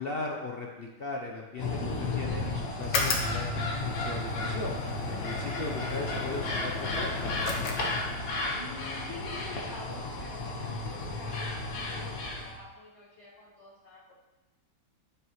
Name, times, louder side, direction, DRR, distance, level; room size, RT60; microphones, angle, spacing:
voice 1, 0.0-4.8 5.1-7.2, left 3 dB, 70° left, 0 dB, 0.5 m, -38 dB
sound 1, 1.6-12.6, left 2 dB, 50° left, 1.4 m, -34 dB
sound 2, 2.8-8.4, left 3 dB, 85° left, 1.8 m, -34 dB
voice 2, 8.6-14.0, left 2 dB, 35° left, -10 dB, 2.2 m, -47 dB
11.0 x 6.4 x 3.1 m, 1.0 s
omnidirectional pair, 2.1 m